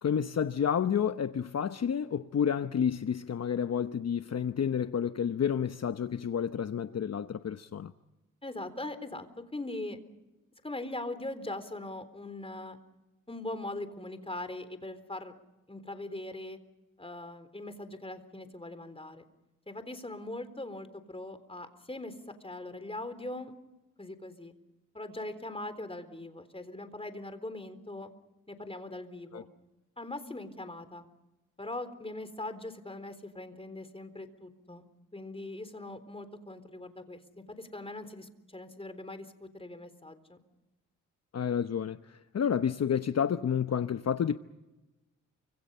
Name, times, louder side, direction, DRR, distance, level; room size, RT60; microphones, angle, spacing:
voice 1, 0.0-7.9 29.3-29.4 41.3-44.4, left 8 dB, 50° left, 1.0 m, -30 dB
voice 2, 8.4-9.3 9.5-10.0 10.6-12.8 13.3-15.3 15.7-16.6 17.0-19.2 19.7-23.5 24.0-24.5 24.9-28.1 28.5-29.5 30.0-31.1 31.6-34.8 35.1-40.4, left 2 dB, 15° left, 3.9 m, -41 dB
29.0 x 26.0 x 5.6 m
cardioid pair, 55°, 32 cm